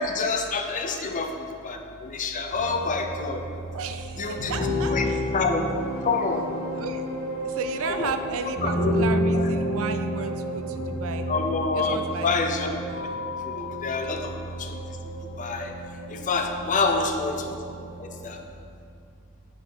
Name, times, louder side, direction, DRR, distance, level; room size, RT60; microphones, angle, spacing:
voice 1, 0.0-3.4 4.2-5.7 6.0-6.4 7.8-8.1 8.6-8.9 9.3-9.5 11.3-12.7 13.4-14.3 14.6-14.8 15.4-15.7 16.1-17.5 18.0-18.4, left 4 dB, 35° left, 4 dB, 0.5 m, -27 dB
sound 1, 2.5-18.3, equal, 70° left, 1.4 m, -30 dB
voice 2, 3.7-5.2 6.7-7.0 7.4-11.3 11.7-12.3 16.6-17.1, right 6 dB, 65° right, 7 dB, 0.4 m, -34 dB
8.2 x 3.9 x 4.6 m, 2.4 s
head